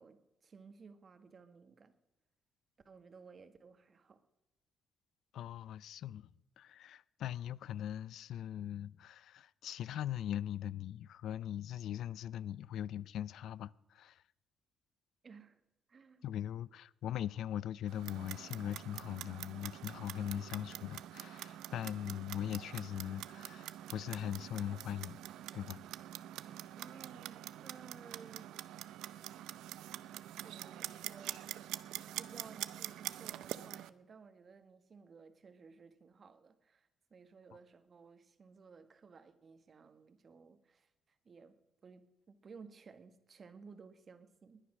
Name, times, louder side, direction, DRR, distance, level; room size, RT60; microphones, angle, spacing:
voice 1, 0.0-1.9 2.8-4.2 15.2-15.6 15.9-16.3 26.7-28.5 30.4-31.6 32.2-41.6 41.8-44.6, right 5 dB, 45° right, 1.6 m, -57 dB
voice 2, 5.3-6.3 6.6-14.2 16.2-25.2 25.5-25.8, left 11 dB, 75° left, 0.4 m, -40 dB
Clock, 17.9-33.9, right 13 dB, 85° right, 0.6 m, -46 dB
20.5 x 10.0 x 6.3 m
cardioid pair, 90°, 0 cm